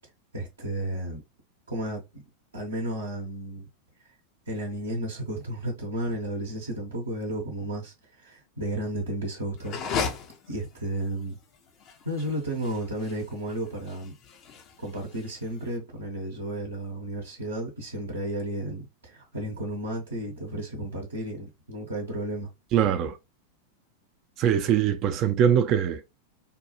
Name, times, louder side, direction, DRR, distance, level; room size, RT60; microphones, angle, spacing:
voice 1, 0.3-1.2 1.7-2.2 2.5-3.7 4.5-9.8 10.5-11.4 12.0-14.2 14.8-22.5, right 1 dB, 75° right, 0.9 m, -33 dB
sound 1, 9.6-15.7, left 6 dB, 35° left, 0.6 m, -36 dB
voice 2, 22.7-23.1 24.4-26.0, right 9 dB, 35° right, 0.4 m, -22 dB
3.7 x 2.3 x 2.8 m
figure-of-eight pair, 90°, 0 cm